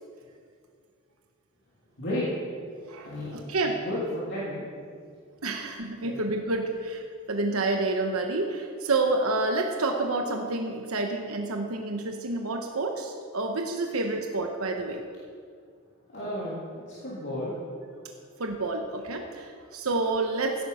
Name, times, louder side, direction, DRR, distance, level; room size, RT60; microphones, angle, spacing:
voice 1, 2.0-2.5 3.0-3.5 3.7-4.6 6.0-6.2 16.1-17.6, left 1 dB, 55° left, -8 dB, 3.1 m, -33 dB
voice 2, 3.5-3.8 5.4-7.0 7.3-15.0 18.4-20.6, right 2 dB, 85° right, 3 dB, 1.1 m, -28 dB
16.0 x 9.2 x 5.7 m, 2.1 s
head